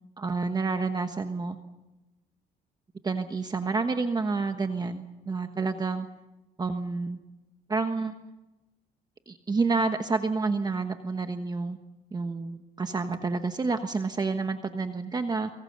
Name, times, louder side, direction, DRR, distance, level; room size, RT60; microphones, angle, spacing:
voice 1, 0.2-1.6 3.0-6.1 6.6-7.2 7.7-8.1 9.3-11.8 12.1-15.5, right 4 dB, 25° right, 7 dB, 1.3 m, -29 dB
25.0 x 23.0 x 6.8 m, 1.0 s
cardioid pair, 110°, 17 cm